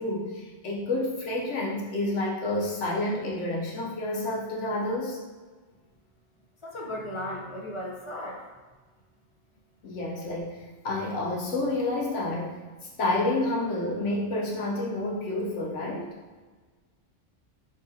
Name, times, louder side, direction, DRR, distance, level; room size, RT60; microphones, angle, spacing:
voice 1, 0.0-5.2 9.8-12.6 13.0-16.1, left 2 dB, 85° left, -3 dB, 1.1 m, -29 dB
voice 2, 6.6-8.5, left 1 dB, 45° left, -2 dB, 0.4 m, -36 dB
3.7 x 3.5 x 2.7 m, 1.4 s
omnidirectional pair, 1.2 m